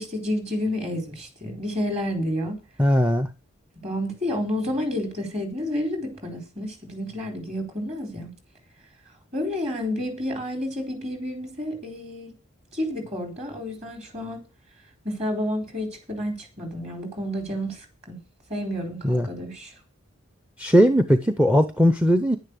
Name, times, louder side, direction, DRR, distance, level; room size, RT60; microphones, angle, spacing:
voice 1, 0.0-2.6 3.8-8.3 9.3-12.3 12.7-14.4 15.0-18.2 18.5-19.7, left 1 dB, 30° right, 4.0 m, -30 dB
voice 2, 2.8-3.3 19.0-19.3 20.6-22.4, equal, 5° right, 0.6 m, -19 dB
10.5 x 10.5 x 6.7 m
head